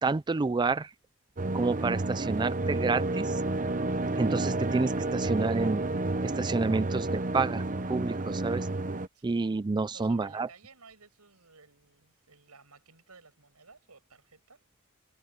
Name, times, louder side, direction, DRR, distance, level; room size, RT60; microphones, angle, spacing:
voice 1, 0.0-0.9 1.5-3.4 4.2-5.9 6.2-8.7 9.2-10.5, right 3 dB, 20° right, 0.4 m, -29 dB
sound 1, 1.4-9.1, right 2 dB, 35° right, 1.0 m, -30 dB
voice 2, 9.9-14.6, right 4 dB, 85° right, 6.1 m, -55 dB
head